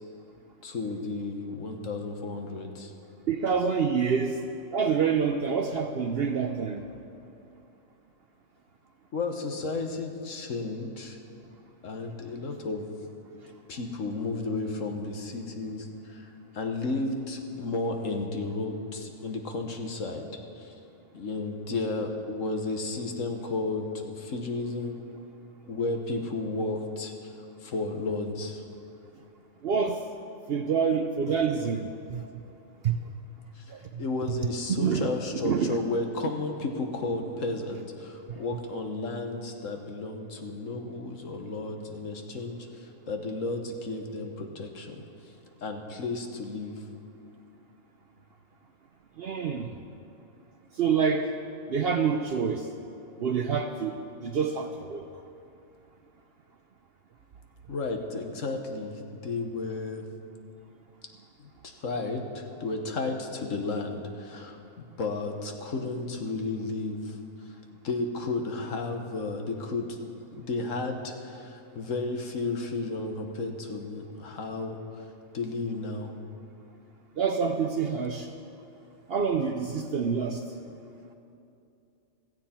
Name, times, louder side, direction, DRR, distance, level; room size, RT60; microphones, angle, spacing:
voice 1, 0.6-2.9 9.1-11.2 11.8-12.9 13.7-20.3 20.6-20.7 21.1-25.0 25.6-27.3 27.6-28.6 33.5-33.6 34.0-45.0 45.6-46.8 57.7-60.0 61.4-64.6 65.0-67.2 67.5-67.6 67.8-70.0 70.4-75.1 75.3-76.1, left 3 dB, 60° left, 4 dB, 1.6 m, -33 dB
voice 2, 3.3-4.4 4.7-6.8 29.6-30.0 30.5-32.3 32.8-33.0 33.7-34.0 34.7-35.1 35.4-35.8 38.3-38.4 49.2-49.7 50.7-51.3 51.7-52.7 53.2-55.1 77.2-78.3 79.1-80.4, right 6 dB, 55° right, 6 dB, 0.7 m, -27 dB
16.5 x 14.5 x 4.4 m, 2.7 s
omnidirectional pair, 1.5 m